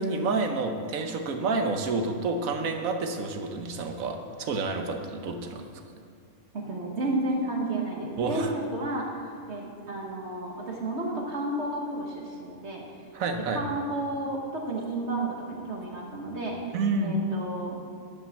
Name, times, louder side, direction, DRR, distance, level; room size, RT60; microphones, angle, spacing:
voice 1, 0.0-5.7 8.2-8.5 13.1-13.6 16.7-17.2, right 3 dB, 80° right, 5 dB, 1.3 m, -29 dB
voice 2, 6.5-12.8 13.5-16.6 17.0-17.8, right 2 dB, 55° right, -1 dB, 1.5 m, -32 dB
11.0 x 5.6 x 7.0 m, 2.5 s
omnidirectional pair, 1.4 m